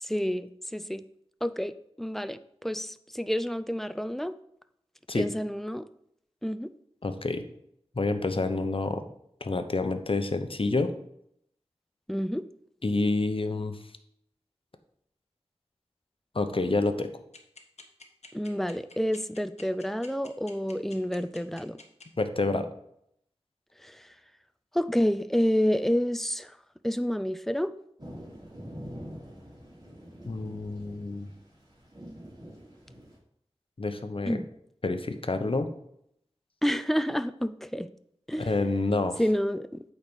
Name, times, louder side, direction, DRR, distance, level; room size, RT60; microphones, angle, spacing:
voice 1, 0.0-1.0 1.4-4.3 5.1-5.9 6.4-6.7 12.1-12.5 18.3-21.8 23.8-24.0 24.7-26.5 26.8-27.7 34.3-34.5 36.6-37.9 38.3-38.6 39.2-39.8, equal, 5° left, 13 dB, 0.5 m, -29 dB
voice 2, 7.0-7.4 7.9-9.0 9.4-10.9 12.8-13.8 16.3-17.1 22.2-22.7 30.2-31.3 33.8-34.4 34.8-35.7 38.4-39.2, left 3 dB, 55° left, 8 dB, 0.9 m, -28 dB
sound 1, 17.3-22.0, left 4 dB, 90° left, 1.1 m, -48 dB
sound 2, 28.0-33.2, equal, 35° right, 3.8 m, -45 dB
8.7 x 4.2 x 6.1 m, 0.73 s
wide cardioid pair, 45°, 11 cm